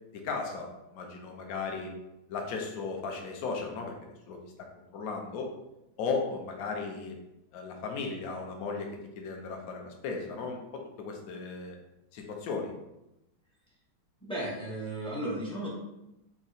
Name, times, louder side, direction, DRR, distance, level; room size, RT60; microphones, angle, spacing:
voice 1, 0.1-1.9 2.3-4.4 4.8-5.5 6.0-7.1 7.5-11.8 12.1-12.7, left 4 dB, 65° left, 2 dB, 0.9 m, -36 dB
voice 2, 14.3-15.7, right 1 dB, 5° left, -6 dB, 0.4 m, -34 dB
3.6 x 3.1 x 4.0 m, 0.90 s
omnidirectional pair, 2.2 m